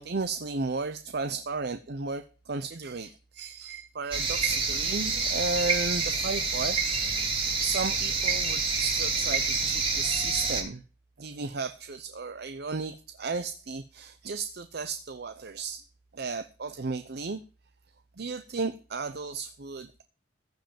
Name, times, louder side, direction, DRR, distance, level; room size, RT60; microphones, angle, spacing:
voice 1, 0.0-6.8 7.6-10.8 11.2-15.8 16.1-17.4 18.2-20.0, right 4 dB, 60° right, 0.7 m, -34 dB
sound 1, 4.1-10.6, right 4 dB, 30° right, 2.8 m, -28 dB
15.0 x 5.3 x 8.9 m
head